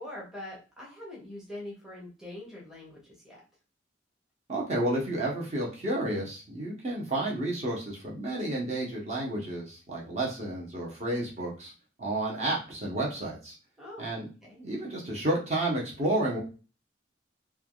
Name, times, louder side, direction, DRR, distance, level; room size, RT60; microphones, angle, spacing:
voice 1, 0.0-3.4 13.8-14.6, left 1 dB, 5° right, -6 dB, 0.7 m, -43 dB
voice 2, 4.5-11.7 12.0-13.5 14.0-14.3 14.6-16.4, right 1 dB, 35° right, -3 dB, 0.8 m, -31 dB
3.3 x 2.2 x 2.3 m, 0.33 s
head